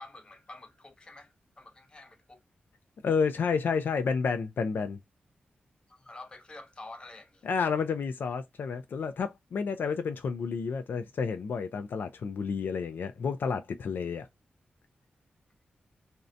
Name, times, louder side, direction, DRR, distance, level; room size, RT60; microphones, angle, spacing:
voice 1, 0.0-2.4 5.9-7.5, left 2 dB, 25° left, 0.6 m, -48 dB
voice 2, 3.0-5.0 7.4-14.3, left 5 dB, 70° left, 0.3 m, -30 dB
2.6 x 2.1 x 2.4 m
wide cardioid pair, 130°, 3 cm